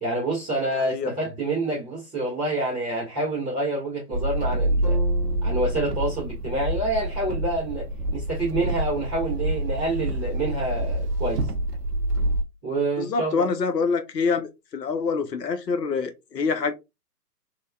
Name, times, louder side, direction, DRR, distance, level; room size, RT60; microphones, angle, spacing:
voice 1, 0.0-5.0 5.4-7.9 8.1-11.5 12.6-13.5, right 2 dB, 5° right, 0.4 m, -27 dB
voice 2, 0.7-1.1 13.0-16.7, left 5 dB, 80° left, 0.8 m, -26 dB
sound 1, 4.1-12.4, right 1 dB, 70° right, 0.7 m, -27 dB
sound 2, 4.8-8.9, right 3 dB, 10° left, 1.2 m, -42 dB
3.3 x 2.2 x 2.3 m
hypercardioid pair, 140°, 48 cm